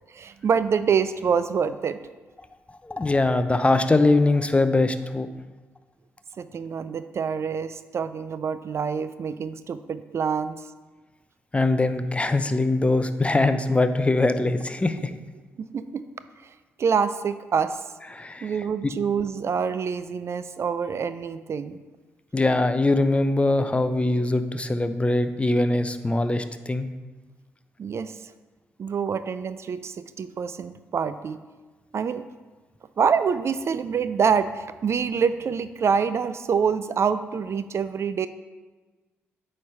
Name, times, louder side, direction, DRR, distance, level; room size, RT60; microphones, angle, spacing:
voice 1, 0.1-2.0 6.4-10.6 15.6-16.0 16.4-17.8 18.4-21.8 27.8-28.3 28.8-31.4 31.9-32.2 33.0-38.3, right 6 dB, 50° right, 13 dB, 0.3 m, -26 dB
voice 2, 2.8-5.3 11.5-15.1 18.1-18.5 22.3-26.9, left 2 dB, 20° left, 10 dB, 0.6 m, -22 dB
8.4 x 3.3 x 5.4 m, 1.3 s
hypercardioid pair, 40°, 6 cm